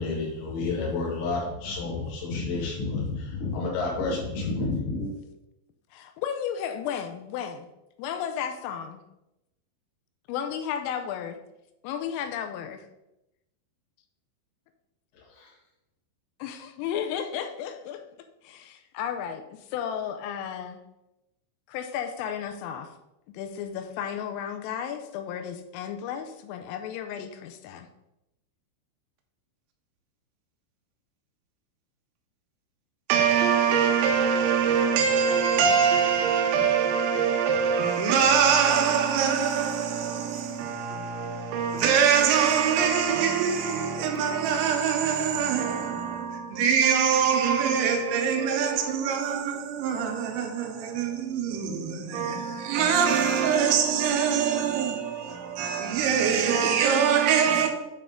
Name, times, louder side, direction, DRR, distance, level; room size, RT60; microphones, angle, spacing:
voice 1, 0.0-5.1 15.2-15.5, left 3 dB, 70° left, 3.8 m, -30 dB
voice 2, 5.9-7.7 8.0-9.0 10.3-11.4 11.8-12.9 16.4-18.0 18.4-20.8 21.7-22.9 23.3-27.9, left 8 dB, 85° left, 3.2 m, -33 dB
voice 3, 33.1-57.7, right 7 dB, 90° right, 3.4 m, -24 dB
9.0 x 3.6 x 3.6 m
omnidirectional pair, 5.9 m